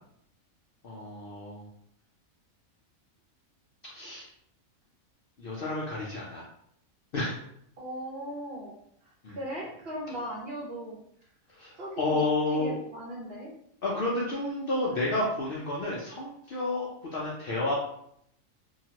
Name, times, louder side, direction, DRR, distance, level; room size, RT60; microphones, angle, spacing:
voice 1, 0.8-1.6 3.9-4.3 5.4-6.4 7.1-7.3 9.2-9.3 11.6-11.7 12.0-12.7 13.8-17.7, left 2 dB, 60° left, -5 dB, 0.6 m, -30 dB
voice 2, 7.8-8.8 9.0-11.0 11.8-13.5, equal, 55° right, -3 dB, 0.9 m, -38 dB
2.8 x 2.3 x 2.8 m, 0.72 s
omnidirectional pair, 1.4 m